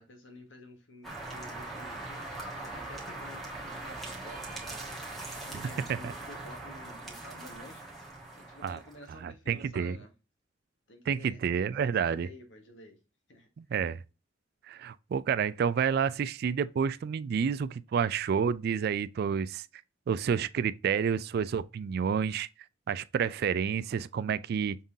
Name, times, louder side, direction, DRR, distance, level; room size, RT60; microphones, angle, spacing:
voice 1, 0.0-2.3 2.6-4.9 5.3-7.8 8.4-10.1 10.9-11.4 11.7-13.0 13.3-13.5, left 1 dB, 70° left, 1.4 m, -51 dB
sound 1, 1.0-9.2, right 2 dB, ahead, 1.2 m, -41 dB
voice 2, 9.2-10.0 11.1-12.3 13.6-14.0 14.7-19.7 20.1-22.5 22.9-24.8, right 7 dB, 55° right, 0.3 m, -29 dB
5.4 x 3.6 x 2.6 m
head